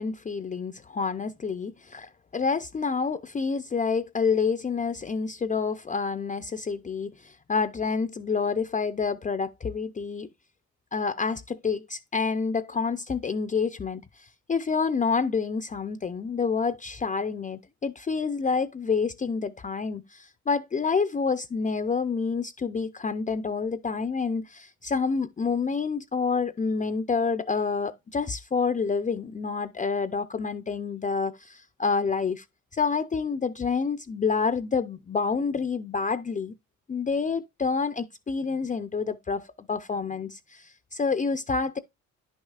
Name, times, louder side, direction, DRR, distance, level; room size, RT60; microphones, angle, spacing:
voice 1, 0.0-10.3 10.9-32.4 32.7-36.5 36.9-41.8, left 5 dB, 25° left, 0.5 m, -28 dB
10.5 x 6.4 x 2.4 m
cardioid pair, 90°, 30 cm